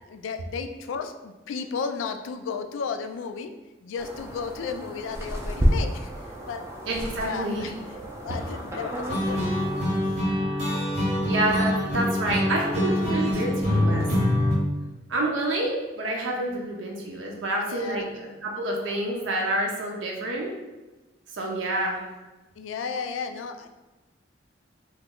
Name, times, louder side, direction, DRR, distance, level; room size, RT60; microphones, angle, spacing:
voice 1, 0.1-3.5 3.8-6.1 6.4-6.7 7.3-7.7 8.2-9.6 10.0-10.3 17.5-18.1 22.6-23.7, left 5 dB, 85° left, 7 dB, 0.3 m, -34 dB
sound 1, 4.0-10.0, equal, 15° right, 0.4 m, -30 dB
voice 2, 6.9-7.6 11.2-14.1 15.1-20.5 21.3-22.0, right 1 dB, 80° right, -1 dB, 0.5 m, -28 dB
sound 2, 9.1-14.5, equal, 35° right, 0.8 m, -25 dB
2.9 x 2.3 x 3.5 m, 1.1 s
head